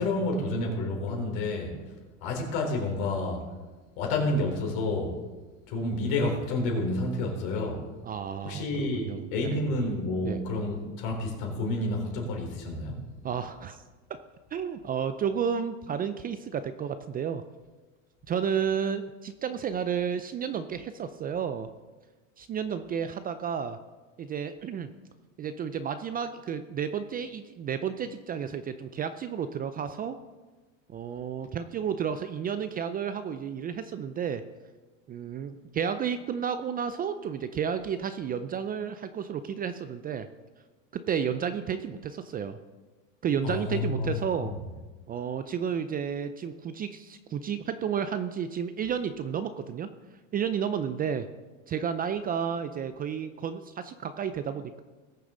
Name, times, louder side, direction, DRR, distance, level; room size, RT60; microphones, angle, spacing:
voice 1, 0.0-1.7 2.2-3.4 4.0-5.2 5.7-7.9 8.4-13.0 43.4-44.2 44.4-44.5, left 2 dB, 65° left, 1 dB, 4.0 m, -29 dB
voice 2, 8.0-9.6 10.2-10.4 13.2-13.8 14.5-17.4 18.3-21.7 22.4-23.8 24.2-24.9 25.4-30.2 30.9-34.4 35.1-40.3 40.9-42.6 43.2-44.5 45.1-49.9 50.3-51.3 51.7-54.8, right 7 dB, 25° right, 11 dB, 0.4 m, -32 dB
20.0 x 6.7 x 3.9 m, 1.3 s
supercardioid pair, 110°, 39 cm